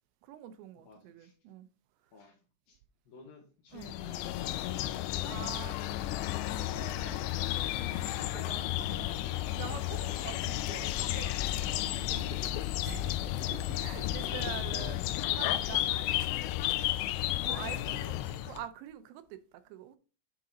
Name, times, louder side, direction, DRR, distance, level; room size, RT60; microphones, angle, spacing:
voice 1, 0.2-1.7 2.0-2.1 3.7-3.9 5.3-5.8 6.4-11.4 12.0-15.1 15.4-16.3 17.4-20.0, right 11 dB, 80° right, 2.8 m, -46 dB
voice 2, 0.8-1.3 2.1-2.4 2.7-2.8 3.1-4.7 5.2-5.9 14.6-15.0 16.7-17.1, left 4 dB, 65° left, 2.6 m, -53 dB
sound 1, 3.8-18.6, left 14 dB, 80° left, 2.6 m, -33 dB
9.4 x 4.0 x 3.7 m
omnidirectional pair, 5.2 m